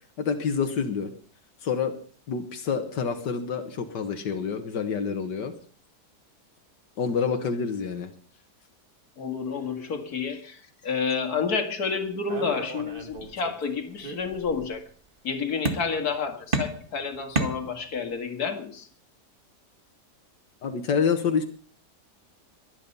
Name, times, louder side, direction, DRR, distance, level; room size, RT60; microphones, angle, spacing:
voice 1, 0.2-1.1 1.6-1.9 2.3-5.5 7.0-8.1 20.6-21.4, left 6 dB, 90° left, 6 dB, 2.0 m, -27 dB
voice 2, 9.2-14.9 15.2-18.9, left 5 dB, 65° left, 6 dB, 2.5 m, -30 dB
sound 1, 12.3-13.6 14.0-14.7 15.7-16.2 16.5-18.1, right 3 dB, 30° right, 2.1 m, -32 dB
22.5 x 9.7 x 5.5 m, 0.43 s
omnidirectional pair, 1.8 m